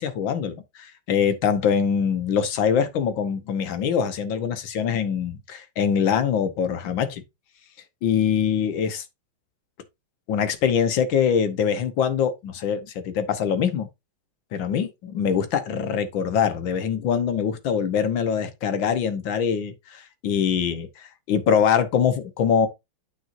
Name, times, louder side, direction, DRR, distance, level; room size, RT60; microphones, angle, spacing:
voice 1, 0.0-7.2 8.0-9.0 10.3-13.9 14.5-22.7, left 7 dB, 70° left, 1.8 m, -23 dB
8.9 x 5.9 x 2.6 m
omnidirectional pair, 2.3 m